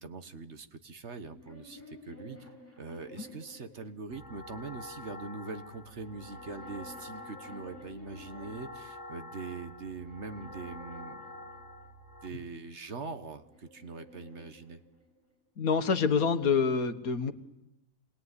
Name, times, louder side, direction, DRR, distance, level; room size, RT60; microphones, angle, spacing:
voice 1, 0.0-2.4 2.8-11.2 12.2-14.8, right 4 dB, 50° right, 9 dB, 1.5 m, -42 dB
sound 1, 1.1-4.5 5.4-8.8 9.5-11.9 12.9-15.3, left 1 dB, 10° left, 6.4 m, -53 dB
sound 2, 4.1-12.3, left 1 dB, 30° left, 2.0 m, -47 dB
voice 2, 15.6-17.3, left 5 dB, 75° left, 9 dB, 1.8 m, -26 dB
27.5 x 20.5 x 9.8 m, 0.94 s
omnidirectional pair, 1.5 m